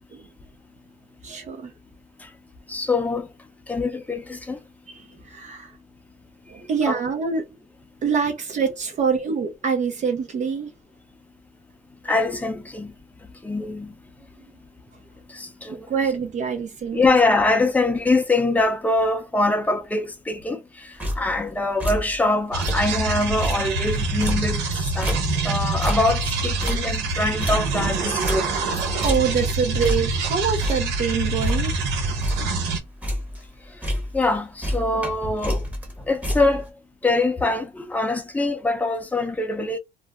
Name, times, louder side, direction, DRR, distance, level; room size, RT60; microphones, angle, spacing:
voice 1, 1.2-1.7 4.9-5.7 6.5-7.6 8.0-10.7 15.7-17.0 29.0-31.7, right 6 dB, 45° right, 0.6 m, -25 dB
voice 2, 2.7-3.3 3.7-4.6 6.9-7.0 12.0-12.9 13.4-13.9 15.3-15.9 16.9-25.2 25.4-28.5 34.1-35.6 36.1-36.7 37.0-39.8, left 2 dB, 10° left, 0.6 m, -23 dB
sound 1, 21.0-21.5 21.8-22.2 22.5-23.0 23.3-25.6 25.8-28.7 29.0-29.5 29.8-30.2 30.6-31.9 32.2-32.6 32.9-33.5 33.8-34.3 34.6-36.7, equal, 10° right, 0.9 m, -29 dB
sound 2, 22.5-32.8, right 3 dB, 85° right, 0.7 m, -25 dB
2.5 x 2.0 x 3.4 m
cardioid pair, 110°, 17 cm